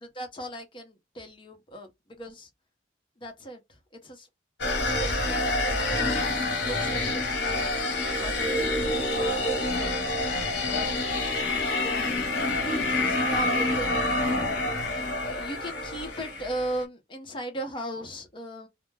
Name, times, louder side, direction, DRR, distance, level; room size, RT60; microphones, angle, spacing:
voice 1, 0.0-2.5 3.2-4.3 4.9-6.1 6.6-7.8 8.1-9.5 10.7-11.0 11.7-12.2 13.1-18.7, right 1 dB, 25° left, 0.7 m, -38 dB
sound 1, 4.6-16.8, left 2 dB, 65° left, 0.9 m, -27 dB
2.2 x 2.0 x 3.2 m
head